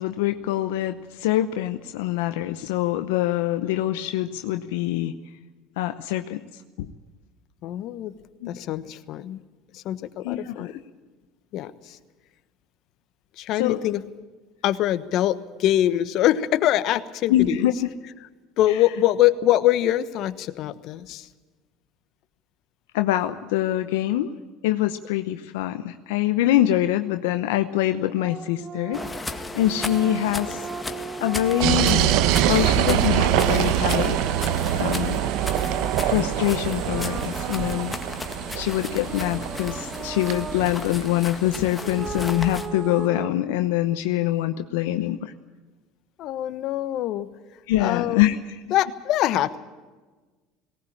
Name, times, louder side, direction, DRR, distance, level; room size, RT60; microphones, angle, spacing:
voice 1, 0.0-5.1 5.8-6.9 8.4-8.5 10.2-10.7 13.6-13.8 17.3-17.9 22.9-24.3 24.6-29.0 29.5-30.6 31.2-32.2 32.5-34.2 34.7-35.2 36.0-38.0 38.5-45.3 47.7-48.4, left 13 dB, 80° left, 8 dB, 0.8 m, -24 dB
voice 2, 7.6-8.1 8.5-9.4 9.7-10.7 11.5-12.0 13.4-14.0 14.6-17.7 18.6-21.3 46.2-47.3 47.8-48.2 48.7-49.6, left 13 dB, 60° left, 13 dB, 1.2 m, -24 dB
sound 1, 28.1-32.3 33.4-36.4 36.7-38.3 38.9-40.8 41.8-43.3, right 6 dB, 35° right, 1.0 m, -37 dB
sound 2, 28.9-42.7, left 3 dB, 15° left, 1.9 m, -36 dB
sound 3, 31.6-42.3, right 11 dB, 65° right, 1.1 m, -24 dB
18.5 x 18.0 x 8.8 m, 1.3 s
hypercardioid pair, 80°, 0 cm